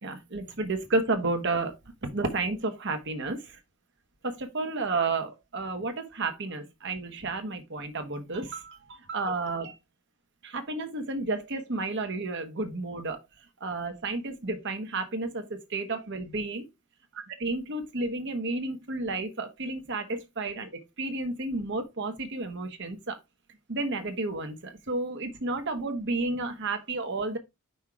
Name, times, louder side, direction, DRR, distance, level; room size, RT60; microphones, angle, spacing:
voice 1, 0.0-1.7 2.0-3.6 4.2-9.8 10.4-13.2 13.6-16.7 17.4-20.7 21.0-23.2 23.7-27.4, right 3 dB, 55° right, 1.2 m, -31 dB
5.6 x 3.5 x 4.7 m
head